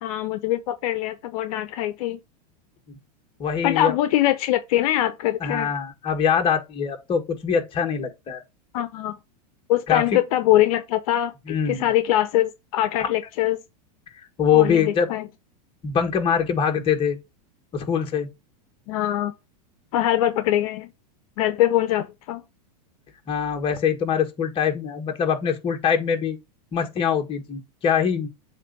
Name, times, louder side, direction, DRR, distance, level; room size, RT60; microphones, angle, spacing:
voice 1, 0.0-2.2 3.6-5.7 8.7-9.1 9.7-11.3 11.7-13.6 14.5-15.3 18.9-19.3 19.9-20.9 21.4-22.4, left 13 dB, 55° left, 0.8 m, -23 dB
voice 2, 3.4-3.9 5.4-8.4 9.9-10.2 11.5-11.9 13.0-13.1 14.4-15.1 15.8-17.2 17.7-18.3 23.3-26.4 26.7-28.3, left 7 dB, 25° left, 1.6 m, -23 dB
7.4 x 2.6 x 5.2 m
supercardioid pair, 140°, 21 cm